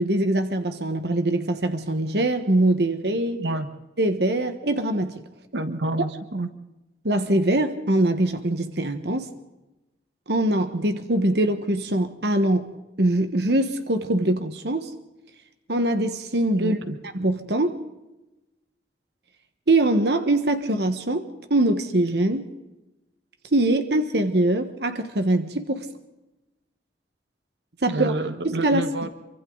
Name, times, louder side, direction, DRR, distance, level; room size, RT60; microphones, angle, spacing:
voice 1, 0.0-3.4 4.0-5.2 7.0-9.3 10.3-12.7 13.0-14.9 15.7-16.8 17.1-17.8 19.7-22.4 23.5-25.9 27.8-28.1 28.4-29.1, right 1 dB, 65° right, 8 dB, 1.4 m, -23 dB
voice 2, 5.5-6.5 16.6-17.0 27.8-29.1, right 2 dB, 80° right, 9 dB, 1.5 m, -28 dB
27.5 x 24.5 x 4.0 m, 1.0 s
head